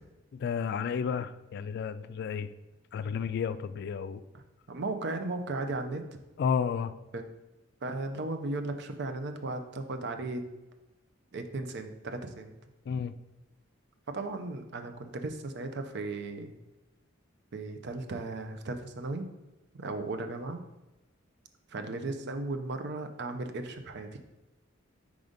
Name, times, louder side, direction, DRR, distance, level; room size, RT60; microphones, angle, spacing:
voice 1, 0.4-2.5 2.9-4.2 6.4-6.9 12.9-13.1, left 6 dB, 55° left, 13 dB, 0.3 m, -31 dB
voice 2, 4.7-6.2 7.1-7.3 7.8-10.5 11.3-12.5 14.1-16.5 17.5-19.3 19.7-20.6 21.7-24.1, right 2 dB, 60° right, 6 dB, 0.6 m, -36 dB
4.8 x 3.9 x 5.0 m, 1.0 s
head